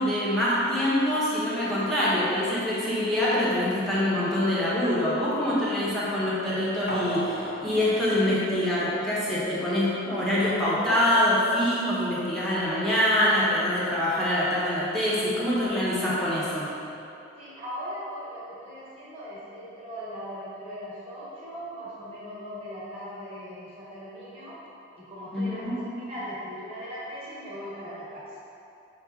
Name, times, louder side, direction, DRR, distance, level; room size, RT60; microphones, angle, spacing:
voice 1, 0.0-16.7 25.3-25.8, left 1 dB, ahead, -9 dB, 0.8 m, -25 dB
sound 1, 6.9-9.4 9.8-9.9, equal, 50° left, 0.4 m, -36 dB
voice 2, 17.4-24.6 25.0-25.6 26.0-28.2, equal, 30° right, -10 dB, 1.2 m, -39 dB
5.8 x 2.3 x 3.5 m, 2.7 s
head